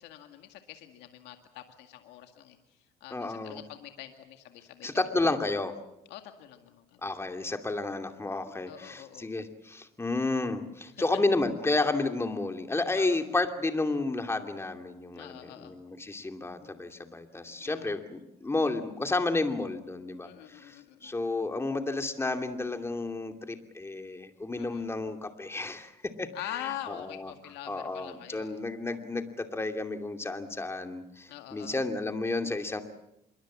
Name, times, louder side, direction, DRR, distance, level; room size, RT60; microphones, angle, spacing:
voice 1, 0.0-2.6 3.0-4.9 5.3-5.4 6.1-7.0 8.7-9.3 13.0-13.2 15.1-15.7 17.6-17.9 20.2-21.2 24.6-24.9 26.3-28.6 31.3-31.8, left 13 dB, 90° left, 6 dB, 2.1 m, -44 dB
voice 2, 3.1-3.6 4.8-5.7 7.0-27.3 27.7-32.8, left 2 dB, 15° left, 6 dB, 2.7 m, -31 dB
26.5 x 23.0 x 7.5 m, 0.85 s
cardioid pair, 110°, 17 cm